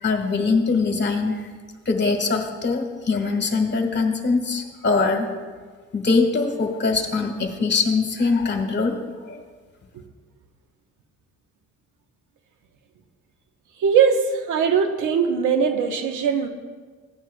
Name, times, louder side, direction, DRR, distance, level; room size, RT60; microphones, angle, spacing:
voice 1, 0.0-1.5 1.8-5.3 5.9-9.0 9.2-9.4, left 4 dB, 35° left, 4 dB, 1.5 m, -22 dB
voice 2, 13.8-16.5, right 6 dB, 80° right, 5 dB, 1.0 m, -20 dB
16.0 x 9.3 x 2.3 m, 1.5 s
cardioid pair, 90°, 30 cm